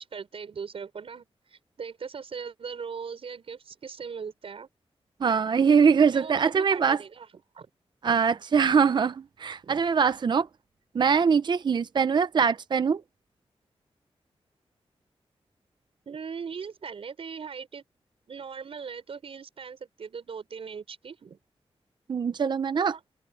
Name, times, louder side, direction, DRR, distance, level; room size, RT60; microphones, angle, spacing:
voice 1, 0.0-4.7 6.1-7.3 7.5-7.7 9.6-9.7 16.1-17.8 18.3-21.4 22.9-23.0, right 6 dB, 65° right, 6.1 m, -39 dB
voice 2, 5.2-7.0 8.0-10.5 10.9-13.0 22.1-23.0, right 6 dB, 45° right, 0.6 m, -23 dB
open air
wide cardioid pair, 165°, 10 cm